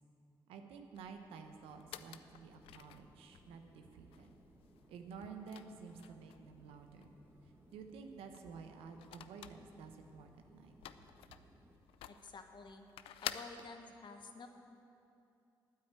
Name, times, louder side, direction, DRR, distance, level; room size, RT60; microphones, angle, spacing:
voice 1, 0.5-4.4 4.9-7.1 7.4-10.7, right 5 dB, 85° right, 5 dB, 1.0 m, -52 dB
sound 1, 1.0-13.7, left 11 dB, 85° left, 0.4 m, -52 dB
sound 2, 1.5-11.7, right 1 dB, 25° right, 1.4 m, -65 dB
voice 2, 12.1-12.9 13.2-14.5, left 4 dB, 55° left, 5 dB, 1.3 m, -51 dB
9.3 x 8.7 x 8.9 m, 2.7 s
supercardioid pair, 55°, 9 cm